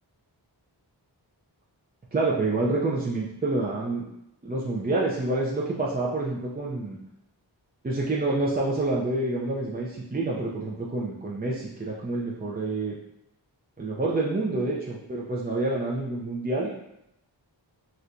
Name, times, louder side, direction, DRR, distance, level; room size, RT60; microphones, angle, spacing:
voice 1, 2.1-4.1 4.4-7.0 7.8-13.0 13.8-16.7, right 2 dB, 20° right, -4 dB, 0.4 m, -28 dB
4.2 x 2.2 x 2.5 m, 0.83 s
wide cardioid pair, 40°, 47 cm